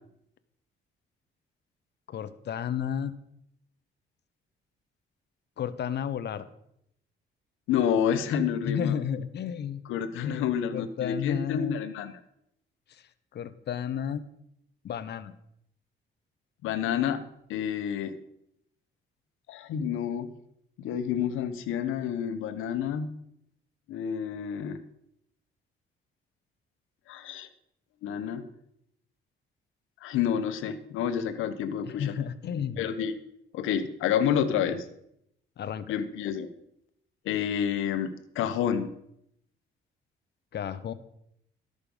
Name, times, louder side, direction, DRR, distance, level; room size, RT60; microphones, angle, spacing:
voice 1, 2.1-3.1 5.6-6.5 8.6-9.8 10.1-11.8 12.9-13.0 13.3-14.3 14.8-15.3 31.8-32.9 34.7-34.8 35.6-35.9 40.5-40.9, left 8 dB, 60° left, 13 dB, 0.9 m, -32 dB
voice 2, 7.7-9.0 9.9-12.1 16.6-17.2 17.5-18.1 19.5-20.3 20.8-23.1 23.9-24.8 27.1-27.5 28.0-28.5 30.0-32.1 32.8-33.1 33.5-34.9 35.9-36.5 37.2-38.9, left 8 dB, 90° left, 10 dB, 1.0 m, -29 dB
13.0 x 6.7 x 5.3 m, 0.77 s
cardioid pair, 90°, 20 cm